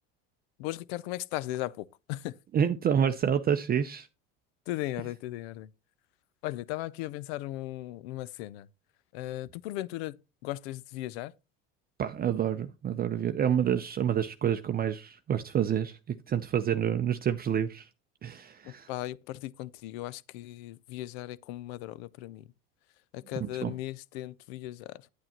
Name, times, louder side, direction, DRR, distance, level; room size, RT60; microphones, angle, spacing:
voice 1, 0.6-2.4 4.7-5.7 6.4-8.7 9.1-11.3 18.6-22.5 23.1-25.1, left 16 dB, 85° left, 0.5 m, -37 dB
voice 2, 2.5-4.1 12.0-17.9 18.2-18.9 23.4-23.7, right 9 dB, 30° right, 0.5 m, -28 dB
9.3 x 8.9 x 2.9 m
supercardioid pair, 100°, 30 cm